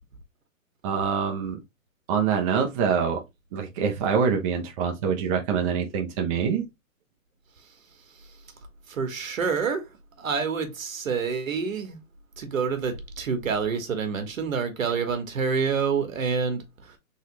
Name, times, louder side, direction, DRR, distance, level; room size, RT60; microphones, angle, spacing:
voice 1, 0.8-1.6 2.1-3.2 3.5-6.6, right 6 dB, 25° right, 0.7 m, -25 dB
voice 2, 8.9-9.9 10.2-12.0 12.4-17.0, right 5 dB, 70° right, 1.7 m, -27 dB
4.0 x 3.8 x 3.1 m
hypercardioid pair, 150°, 42 cm